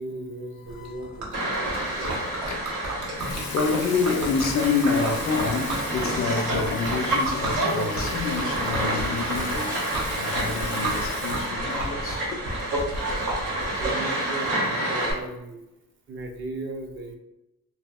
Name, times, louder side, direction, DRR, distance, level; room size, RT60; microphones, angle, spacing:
voice 1, 0.0-2.2 7.2-7.4 7.8-8.0 11.2-12.3 13.0-13.2 13.6-15.6 16.1-17.1, right 2 dB, 40° right, 0.5 m, -37 dB
voice 2, 0.6-1.6 2.8-12.4, left 5 dB, 50° left, 0.4 m, -28 dB
Liquid, 0.7-13.9, right 1 dB, 70° right, 0.9 m, -33 dB
sound 1, 1.3-15.1, right 1 dB, 90° right, 1.3 m, -29 dB
Water tap faucet / Sink (filling or washing) / Liquid, 2.5-2.7 3.1-11.9 12.2-12.5, left 4 dB, 85° left, 0.6 m, -40 dB
2.7 x 2.7 x 2.3 m
cardioid pair, 90°, 30 cm